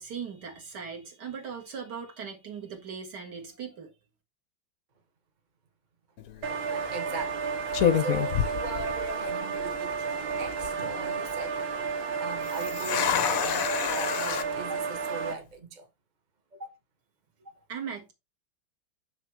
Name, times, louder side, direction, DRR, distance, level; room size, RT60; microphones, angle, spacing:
voice 1, 0.0-3.9 17.7-18.1, right 6 dB, 50° right, 2.3 m, -39 dB
sound 1, 6.2-6.5 7.2-7.4 7.7-9.3 9.6-9.7 10.3-10.7 12.4-14.4, left 9 dB, 65° left, 0.8 m, -28 dB
sound 2, 6.4-15.3, right 5 dB, 70° right, 2.0 m, -32 dB
voice 2, 6.9-7.5 7.9-11.6 12.2-15.9 16.5-16.7 17.4-17.5, right 3 dB, 25° right, 1.0 m, -40 dB
6.7 x 6.5 x 3.3 m
omnidirectional pair, 2.3 m